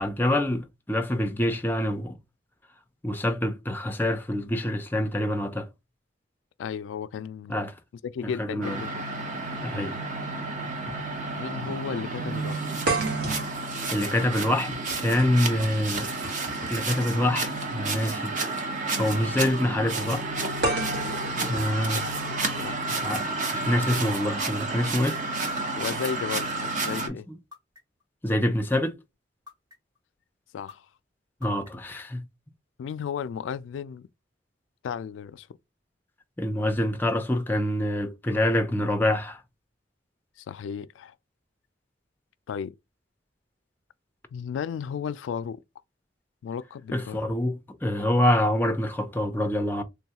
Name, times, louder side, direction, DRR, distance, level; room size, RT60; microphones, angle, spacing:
voice 1, 0.0-2.2 3.0-5.7 7.5-7.7 8.4-8.8 9.6-10.0 13.9-16.1 16.7-18.3 19.0-20.3 21.4-22.0 22.8-25.2 27.1-27.2 28.2-29.0 31.4-32.2 36.4-39.4 46.9-49.8, left 1 dB, 10° left, 0.4 m, -26 dB
voice 2, 6.6-7.7 8.0-9.0 11.3-12.7 22.5-22.8 25.7-27.3 30.5-30.9 32.8-34.1 34.8-35.5 40.4-41.1 42.5-42.8 44.3-45.6 46.4-47.3, left 7 dB, 90° left, 0.3 m, -34 dB
sound 1, 8.6-27.1, right 3 dB, 45° right, 0.7 m, -31 dB
sound 2, 10.9-11.0 11.4-11.5 12.9-16.9 18.1-18.2 20.6-22.6, right 2 dB, 65° right, 1.1 m, -33 dB
sound 3, 24.8-24.9 25.6-26.1 26.8-26.9 27.5-28.0 28.7-28.8 29.5-30.0 30.7-30.8 31.4-31.9, left 6 dB, 20° right, 1.0 m, -46 dB
3.5 x 2.3 x 2.8 m
head